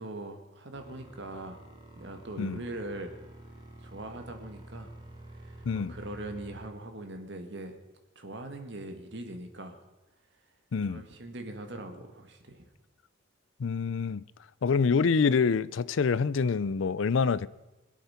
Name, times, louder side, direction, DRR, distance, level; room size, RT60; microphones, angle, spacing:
voice 1, 0.0-1.6 2.0-3.1 3.8-4.9 5.3-7.8 8.2-9.8 10.9-12.7, right 1 dB, 60° right, 2.0 m, -41 dB
sound 1, 0.7-6.7, right 1 dB, 20° right, 2.3 m, -49 dB
voice 2, 10.7-11.0 13.6-14.2 14.6-17.5, left 5 dB, 70° left, 0.5 m, -26 dB
24.5 x 8.5 x 5.8 m
head